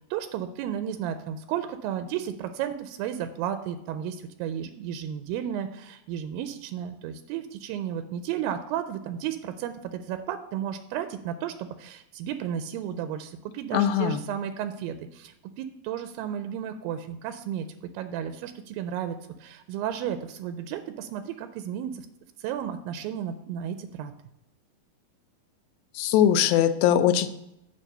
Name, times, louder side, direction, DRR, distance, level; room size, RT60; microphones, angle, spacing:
voice 1, 0.1-17.7 17.9-22.1 22.4-24.1, right 9 dB, 85° right, 9 dB, 2.3 m, -33 dB
voice 2, 13.7-14.2 26.0-27.3, left 10 dB, 85° left, 10 dB, 2.3 m, -21 dB
9.3 x 3.4 x 6.5 m, 0.84 s
omnidirectional pair, 4.1 m